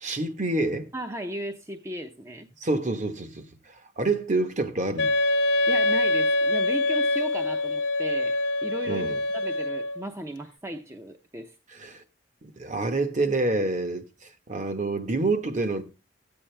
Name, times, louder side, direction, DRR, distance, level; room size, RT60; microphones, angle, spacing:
voice 1, 0.0-0.9 2.6-5.1 8.9-9.2 11.7-12.0 12.4-15.8, right 2 dB, 40° right, 1.2 m, -27 dB
voice 2, 0.9-2.5 5.7-9.1 9.3-11.6, right 1 dB, 15° right, 0.7 m, -36 dB
Wind instrument woodwind instrument, 5.0-10.0, left 2 dB, 70° left, 1.0 m, -24 dB
13.5 x 8.6 x 3.3 m
head